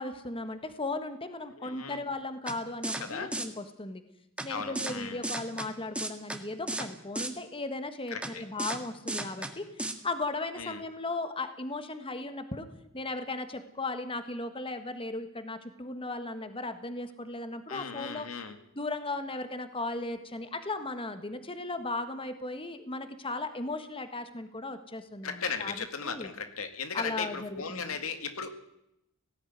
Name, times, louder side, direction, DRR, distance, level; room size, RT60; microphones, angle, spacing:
voice 1, 0.0-4.0 4.4-12.7 12.9-18.3 18.7-25.8 26.0-26.3 26.9-27.9, left 2 dB, 25° left, 9 dB, 1.5 m, -36 dB
voice 2, 1.6-2.0 3.0-3.3 4.5-5.2 8.1-8.4 10.6-10.8 17.7-18.6 25.2-28.5, left 5 dB, 90° left, 8 dB, 2.1 m, -37 dB
sound 1, 2.5-2.6 2.8-3.0 3.3-3.5 4.4-4.5 4.8-4.9 5.2-5.7 6.0-6.4 6.7-6.9 7.2-7.3 8.2-8.3 8.6-8.8 9.1-9.5 9.8-9.9, right 2 dB, 5° right, 1.8 m, -33 dB
18.5 x 15.0 x 9.5 m, 0.83 s
head